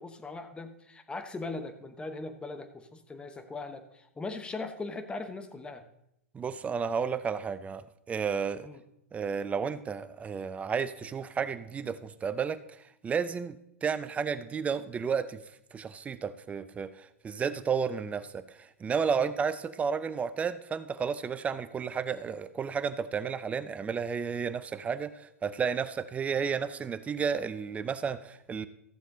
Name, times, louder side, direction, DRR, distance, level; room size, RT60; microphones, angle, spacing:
voice 1, 0.0-5.8 8.6-8.8 19.2-19.3, left 3 dB, 15° left, 8 dB, 1.0 m, -40 dB
voice 2, 6.3-8.7 9.1-15.4 15.7-28.7, right 6 dB, 15° right, 15 dB, 0.5 m, -32 dB
14.0 x 7.2 x 3.8 m, 0.79 s
hypercardioid pair, 105°, 8 cm